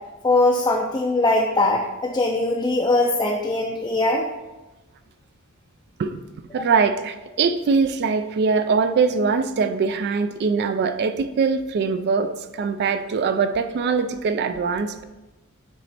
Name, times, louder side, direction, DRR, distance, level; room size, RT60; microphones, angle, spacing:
voice 1, 0.2-4.3 6.6-6.7, left 2 dB, 20° left, -1 dB, 0.4 m, -21 dB
voice 2, 6.5-12.3 12.6-15.0, right 5 dB, 50° right, 10 dB, 0.3 m, -22 dB
7.0 x 3.2 x 4.2 m, 1.1 s
head